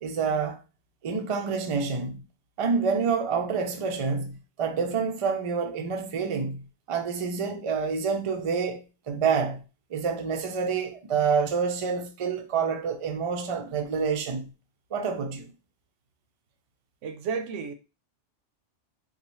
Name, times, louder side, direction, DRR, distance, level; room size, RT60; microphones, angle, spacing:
voice 1, 0.0-0.6 1.0-2.2 2.6-8.8 9.1-9.6 9.9-14.5 14.9-15.5, right 5 dB, 50° right, 0.4 m, -28 dB
voice 2, 17.0-17.7, right 6 dB, 85° right, 0.9 m, -32 dB
4.0 x 2.2 x 3.0 m
omnidirectional pair, 1.2 m